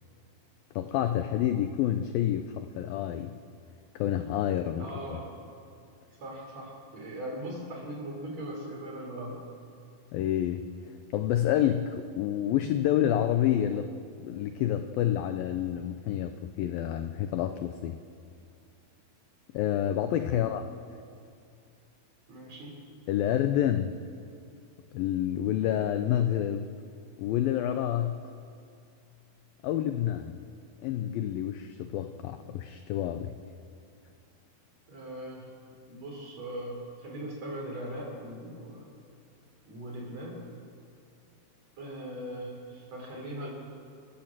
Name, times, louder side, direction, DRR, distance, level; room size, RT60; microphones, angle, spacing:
voice 1, 0.8-3.3 4.0-4.9 10.1-10.7 11.1-13.9 14.2-18.0 19.5-20.7 23.1-24.0 24.9-26.7 27.2-28.2 29.6-30.4 30.8-33.4, left 11 dB, 85° left, 8 dB, 2.0 m, -28 dB
voice 2, 4.8-5.3 6.2-9.4 20.3-20.6 22.3-22.8 34.9-35.5 35.9-38.9 39.7-40.4 41.8-43.5, right 1 dB, 40° right, 0 dB, 4.9 m, -39 dB
30.0 x 13.0 x 7.5 m, 2.4 s
omnidirectional pair, 5.0 m